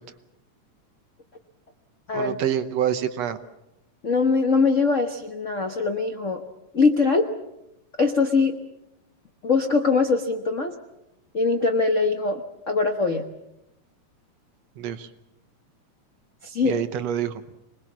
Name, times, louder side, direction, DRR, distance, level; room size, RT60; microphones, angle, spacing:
voice 1, 2.1-3.4 14.8-15.1 16.6-17.4, right 9 dB, 65° right, 10 dB, 2.0 m, -26 dB
voice 2, 4.0-6.4 6.7-7.2 8.0-8.5 9.4-10.7 11.3-12.4 12.7-13.2 16.4-16.8, left 4 dB, 70° left, 5 dB, 0.7 m, -22 dB
26.0 x 20.5 x 7.3 m, 0.88 s
omnidirectional pair, 3.5 m